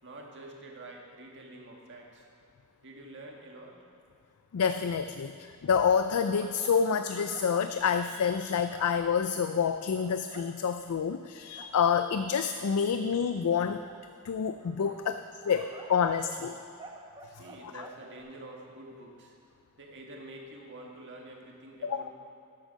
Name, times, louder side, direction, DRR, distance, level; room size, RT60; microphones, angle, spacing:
voice 1, 0.0-2.3 2.8-3.8 12.8-12.9 14.6-15.4 17.3-19.3 19.8-22.1, right 1 dB, 55° right, 0 dB, 1.7 m, -48 dB
voice 2, 4.5-5.3 5.6-13.8 14.2-16.6 17.6-17.7 21.8-22.1, left 6 dB, 80° left, 9 dB, 0.4 m, -28 dB
sound 1, 6.1-9.0 9.6-10.5 10.9-11.0 11.4-11.7 12.4-12.5 13.8-14.0 14.8-16.5 16.8-18.2, right 2 dB, 20° right, 1.0 m, -49 dB
13.0 x 8.4 x 5.2 m, 2.4 s
head